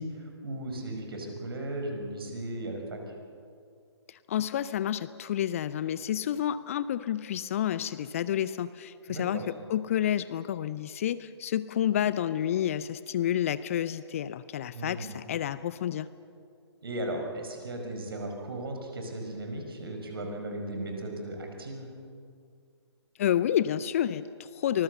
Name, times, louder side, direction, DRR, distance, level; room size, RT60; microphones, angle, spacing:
voice 1, 0.0-3.0 9.1-9.5 14.7-15.1 16.8-21.9, right 1 dB, 55° right, 3 dB, 5.3 m, -36 dB
voice 2, 4.1-9.4 9.7-16.1 23.2-24.8, left 10 dB, 30° left, 16 dB, 0.5 m, -29 dB
24.5 x 21.0 x 6.8 m, 2.3 s
figure-of-eight pair, 135°, 15 cm